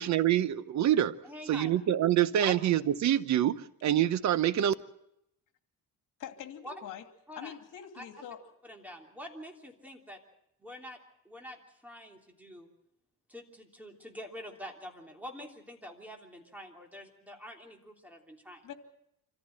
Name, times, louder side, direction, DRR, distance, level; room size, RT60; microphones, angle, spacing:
voice 1, 0.0-1.1 1.5-4.7, right 11 dB, 55° right, 15 dB, 0.9 m, -26 dB
voice 2, 1.2-1.7 2.4-2.5 6.6-6.7 7.3-7.5 7.9-8.0 8.6-10.2 10.6-11.0 11.2-12.7 13.3-18.6, equal, 5° right, 1 dB, 3.3 m, -45 dB
voice 3, 6.2-7.0 7.4-8.4 18.6-18.7, left 9 dB, 70° left, 6 dB, 2.5 m, -44 dB
26.0 x 15.0 x 7.8 m, 0.80 s
cardioid pair, 130°, 33 cm